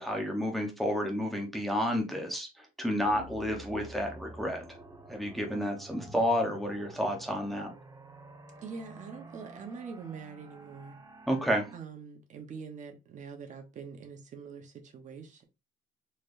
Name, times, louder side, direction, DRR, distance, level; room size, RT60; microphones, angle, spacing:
voice 1, 0.0-4.7 5.1-7.7 11.3-11.7, equal, ahead, 0.9 m, -30 dB
sound 1, 3.0-11.8, right 2 dB, 20° right, 1.1 m, -50 dB
voice 2, 8.6-11.0 11.7-15.4, right 5 dB, 45° right, 1.0 m, -44 dB
4.1 x 3.3 x 2.6 m
cardioid pair, 110°, 17 cm